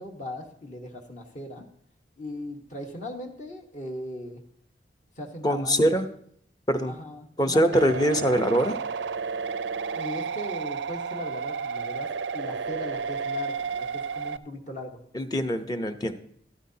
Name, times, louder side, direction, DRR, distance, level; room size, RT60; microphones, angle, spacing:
voice 1, 0.0-1.7 2.2-4.4 5.2-6.0 6.9-7.8 9.9-13.9 14.1-15.0, left 1 dB, 45° left, 3 dB, 1.2 m, -38 dB
voice 2, 5.4-6.1 6.7-6.9 7.4-8.8 15.1-16.1, equal, 20° left, 7 dB, 0.7 m, -23 dB
sound 1, 7.7-14.4, right 5 dB, 90° right, 0.4 m, -32 dB
13.5 x 13.0 x 2.8 m, 0.65 s
head